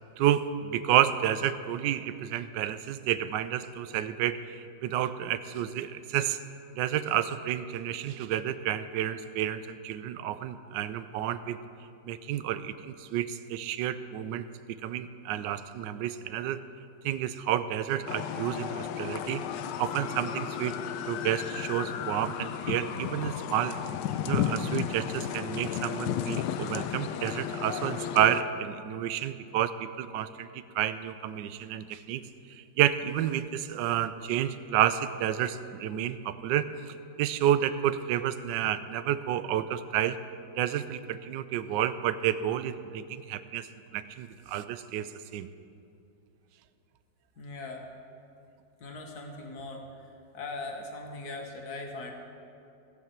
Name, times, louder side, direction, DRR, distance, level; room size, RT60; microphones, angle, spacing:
voice 1, 0.2-6.4 6.7-11.6 12.0-14.5 14.8-16.6 17.0-19.4 19.8-20.7 21.0-23.8 24.2-32.2 32.5-36.6 37.2-40.2 40.6-43.7 43.9-45.5, right 11 dB, 75° right, 13 dB, 1.2 m, -30 dB
sound 1, 18.1-28.4, left 9 dB, 75° left, 1.2 m, -33 dB
voice 2, 47.4-47.9 48.8-52.1, left 2 dB, 55° left, 1 dB, 1.9 m, -40 dB
17.0 x 5.8 x 7.4 m, 2.6 s
omnidirectional pair, 2.0 m